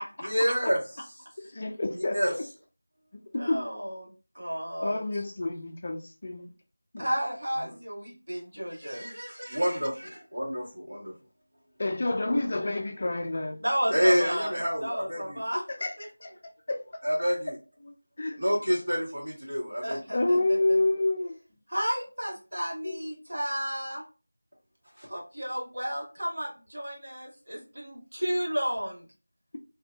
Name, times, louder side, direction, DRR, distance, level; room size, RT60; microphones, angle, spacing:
voice 1, 0.2-0.8 2.1-2.3 9.5-11.1 13.9-15.4 17.0-17.5 18.4-20.0 25.0-25.1, equal, 45° right, 1.5 m, -27 dB
voice 2, 1.4-2.2 3.3-3.6 4.8-6.5 6.9-7.1 11.8-13.6 15.8-16.8 17.8-18.4 20.1-21.4 22.8-23.1, left 2 dB, 35° left, 0.4 m, -29 dB
voice 3, 3.4-5.0 7.0-10.1 13.6-15.6 16.0-16.1 19.8-20.8 21.7-24.0 25.1-29.0, equal, 80° right, 1.3 m, -33 dB
2.6 x 2.5 x 2.2 m
figure-of-eight pair, 175°, 0 cm